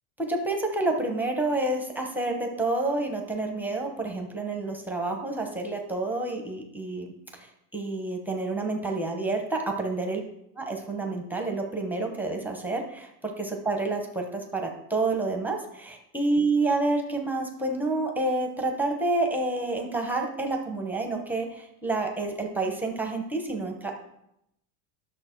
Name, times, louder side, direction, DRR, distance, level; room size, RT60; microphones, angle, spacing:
voice 1, 0.2-7.1 7.3-10.2 10.7-24.0, right 2 dB, 5° right, 2 dB, 0.9 m, -29 dB
11.5 x 6.6 x 4.5 m, 0.80 s
cardioid pair, 165°, 47 cm